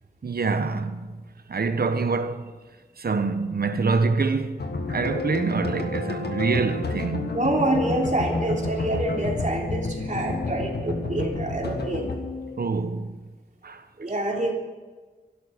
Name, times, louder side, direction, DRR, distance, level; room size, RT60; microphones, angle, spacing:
voice 1, 0.2-1.0 1.5-2.5 3.0-4.6 4.9-7.3 12.6-13.1 13.6-13.8, right 4 dB, 65° right, 1.0 m, -25 dB
sound 1, 4.6-12.7, left 3 dB, 80° left, 1.6 m, -30 dB
voice 2, 7.3-12.2 14.0-14.5, right 1 dB, 50° right, 3.4 m, -26 dB
12.0 x 11.5 x 8.0 m
cardioid pair, 45°, 17 cm